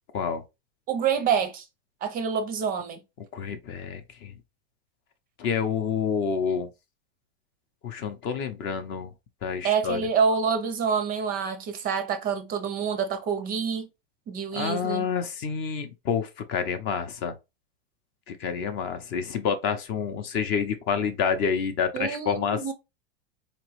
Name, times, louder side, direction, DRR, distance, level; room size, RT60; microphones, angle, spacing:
voice 1, 0.9-1.6 2.0-3.0 9.6-13.9 14.3-15.1 21.9-22.7, right 6 dB, 25° right, 0.5 m, -27 dB
voice 2, 3.3-4.3 5.4-6.7 7.8-9.1 9.4-10.0 14.5-17.3 18.3-22.7, left 6 dB, 35° left, 0.6 m, -28 dB
4.1 x 2.9 x 3.0 m
supercardioid pair, 130°, 33 cm